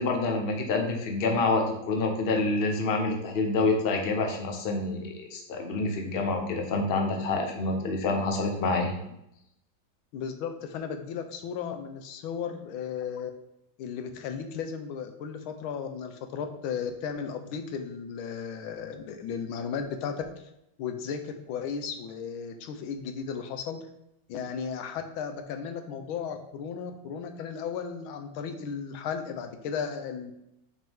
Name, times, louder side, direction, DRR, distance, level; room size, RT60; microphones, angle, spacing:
voice 1, 0.0-8.9, left 3 dB, 50° left, 3 dB, 0.7 m, -27 dB
voice 2, 10.1-13.3 13.8-20.1 20.8-23.8 24.3-30.4, left 6 dB, 90° left, 6 dB, 1.5 m, -35 dB
6.0 x 4.4 x 3.6 m, 0.81 s
omnidirectional pair, 2.2 m